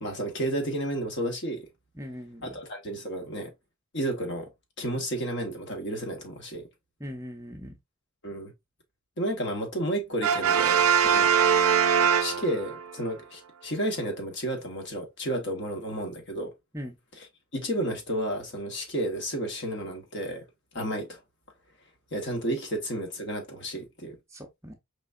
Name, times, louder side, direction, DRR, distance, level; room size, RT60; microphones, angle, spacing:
voice 1, 0.0-1.7 2.4-3.5 3.9-4.5 4.8-6.7 8.2-8.5 9.2-10.8 11.1-11.3 12.2-16.5 17.5-20.4 20.7-21.2 22.1-24.2, right 1 dB, 50° left, 1.3 m, -32 dB
voice 2, 2.0-2.6 7.0-7.8 16.7-17.0 24.3-24.7, equal, 15° right, 0.6 m, -40 dB
Brass instrument, 10.2-12.9, right 7 dB, 75° right, 0.4 m, -22 dB
5.0 x 3.4 x 2.5 m
head